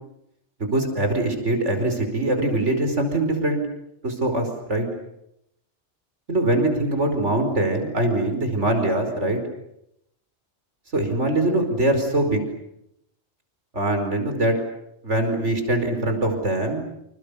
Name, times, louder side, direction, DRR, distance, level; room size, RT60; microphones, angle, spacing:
voice 1, 0.6-3.6 4.0-4.9 6.3-9.4 10.9-12.4 13.7-14.6 15.0-16.9, right 1 dB, 85° right, 6 dB, 5.4 m, -23 dB
29.0 x 27.5 x 7.0 m, 0.79 s
omnidirectional pair, 1.2 m